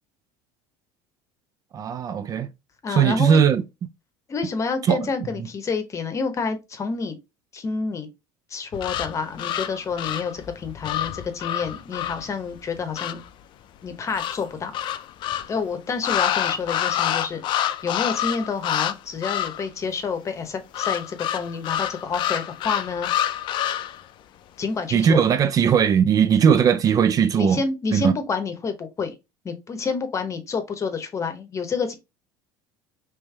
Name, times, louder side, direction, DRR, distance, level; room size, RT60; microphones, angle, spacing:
voice 1, 1.7-2.5 2.9-3.6 4.9-5.0 24.9-27.6 27.9-28.1, right 7 dB, 35° right, 0.3 m, -18 dB
voice 2, 2.8-3.4 4.3-7.2 7.5-8.1 8.5-13.2 13.8-14.7 15.5-17.4 17.8-23.1 24.6-25.2 27.3-29.1 29.4-32.0, left 5 dB, 30° left, 0.9 m, -28 dB
sound 1, 8.7-13.3 14.2-15.5 16.0-18.9 19.2-19.7 20.7-24.0, left 11 dB, 50° left, 0.4 m, -27 dB
3.2 x 3.0 x 3.3 m
supercardioid pair, 100°, 10 cm